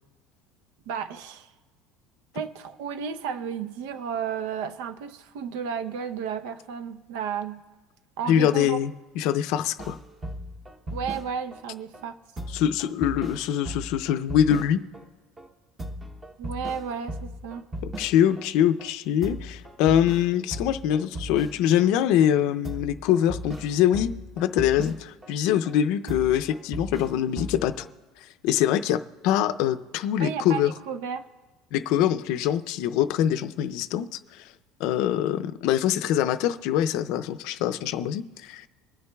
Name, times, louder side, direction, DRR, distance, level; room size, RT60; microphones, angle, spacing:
voice 1, 0.9-1.5 2.3-7.6 8.2-8.8 10.9-12.2 16.4-17.6 30.2-31.3, right 7 dB, 85° right, 0.7 m, -33 dB
voice 2, 8.3-10.0 12.5-14.8 17.8-24.1 24.4-27.9 28.4-30.7 31.7-34.5 34.8-38.7, left 10 dB, 65° left, 0.5 m, -24 dB
sound 1, 9.8-11.6 11.9-12.0 12.4-15.0 15.4-15.5 15.8-18.5 18.8-18.9 19.2-21.9 22.2-22.3 22.6-25.3 25.7-25.8 26.1-27.9, equal, 15° right, 0.9 m, -37 dB
24.0 x 9.7 x 2.3 m
cardioid pair, 160°, 0 cm